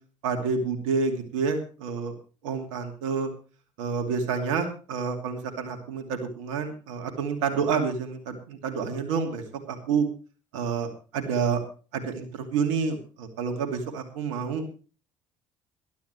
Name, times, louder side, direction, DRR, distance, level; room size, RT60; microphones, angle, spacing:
voice 1, 0.2-2.1 2.4-3.3 3.8-10.1 10.5-11.6 11.9-14.6, right 5 dB, 65° right, 5 dB, 2.7 m, -29 dB
21.5 x 12.0 x 3.2 m, 0.37 s
figure-of-eight pair, 55°, 16 cm